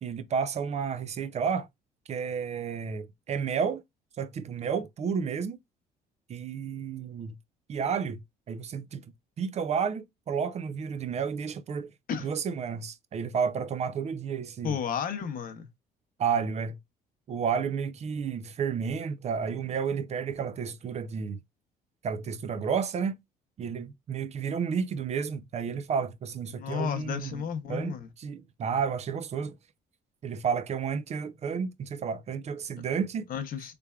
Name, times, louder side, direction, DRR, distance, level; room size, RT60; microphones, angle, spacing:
voice 1, 0.0-1.7 2.1-3.8 4.2-5.6 6.3-7.4 7.7-8.2 8.5-9.1 9.4-11.9 12.2-14.8 16.2-16.8 17.3-21.4 22.0-23.2 23.6-27.4 27.7-29.6 30.2-33.3, right 6 dB, 40° right, 0.5 m, -31 dB
voice 2, 14.6-15.7 26.5-28.1 33.3-33.7, left 7 dB, 55° left, 0.7 m, -32 dB
3.3 x 3.3 x 2.3 m
cardioid pair, 110°, 17 cm